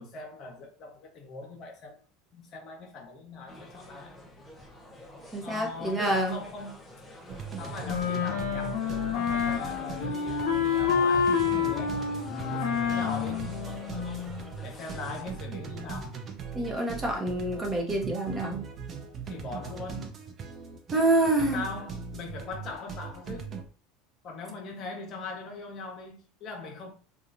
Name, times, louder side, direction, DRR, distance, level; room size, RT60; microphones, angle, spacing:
voice 1, 0.0-2.0 2.3-4.1 5.4-6.8 7.6-12.0 12.5-13.6 14.6-16.2 19.2-20.1 21.4-23.6 24.2-26.9, left 3 dB, 50° left, 0.9 m, -40 dB
sound 1, 3.5-15.2, equal, 15° left, 0.7 m, -44 dB
voice 2, 5.3-6.4 16.5-18.6 20.9-21.6, right 2 dB, 20° right, 0.9 m, -27 dB
sound 2, 7.3-23.6, right 5 dB, 35° right, 0.6 m, -40 dB
Wind instrument woodwind instrument, 7.8-14.5, left 7 dB, 75° left, 0.7 m, -28 dB
2.9 x 2.4 x 2.5 m
hypercardioid pair, 95°, 0 cm